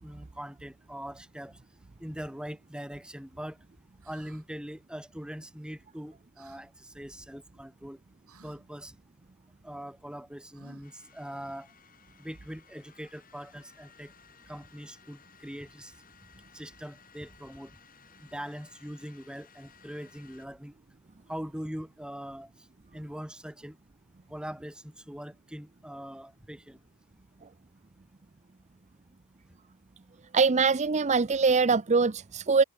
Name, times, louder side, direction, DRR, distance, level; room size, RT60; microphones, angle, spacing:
voice 1, 0.0-1.6 2.0-3.6 4.0-8.0 8.4-9.0 9.6-11.7 12.2-14.1 14.5-15.9 16.5-17.7 18.2-20.7 21.3-22.7 22.9-23.8 24.3-26.8, equal, 5° right, 2.2 m, -42 dB
sound 1, 4.0-4.4 6.4-6.6 8.3-8.6 10.5-11.0, right 4 dB, 70° right, 5.4 m, -57 dB
sound 2, 10.8-20.5, left 7 dB, 40° left, 6.6 m, -59 dB
voice 2, 30.3-32.6, right 4 dB, 30° right, 0.6 m, -23 dB
head